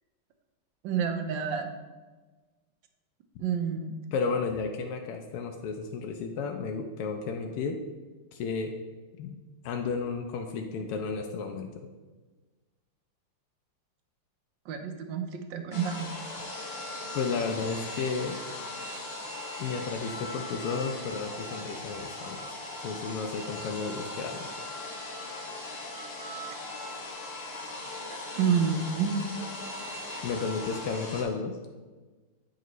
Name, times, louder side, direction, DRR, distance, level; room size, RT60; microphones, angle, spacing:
voice 1, 0.8-1.7 3.4-3.9 14.7-16.1 28.4-29.1, right 7 dB, 70° right, 6 dB, 1.2 m, -28 dB
voice 2, 4.1-7.8 8.3-8.7 9.2-9.4 9.6-11.7 17.1-18.4 19.6-22.5 22.8-24.5 30.2-31.6, left 5 dB, 85° left, 3 dB, 1.5 m, -32 dB
sound 1, 15.7-31.2, left 2 dB, 40° left, 0.9 m, -39 dB
8.7 x 5.0 x 3.1 m, 1.3 s
omnidirectional pair, 2.4 m